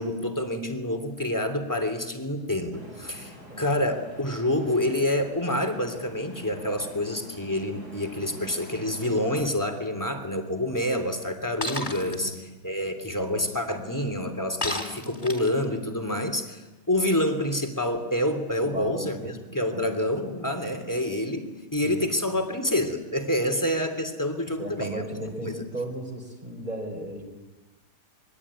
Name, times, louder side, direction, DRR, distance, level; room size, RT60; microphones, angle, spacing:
voice 1, 0.0-12.3 12.6-25.1 25.4-25.5, left 1 dB, 10° left, 7 dB, 3.1 m, -27 dB
sound 1, 2.7-9.3, equal, 70° right, 8.1 m, -46 dB
Shatter, 11.6-12.2 14.6-15.6, left 1 dB, 25° left, 3.6 m, -31 dB
voice 2, 18.6-19.4 19.7-20.0 21.8-22.1 24.6-27.2, right 1 dB, 25° right, 1 dB, 4.8 m, -35 dB
26.0 x 22.5 x 9.9 m, 1.1 s
omnidirectional pair, 1.8 m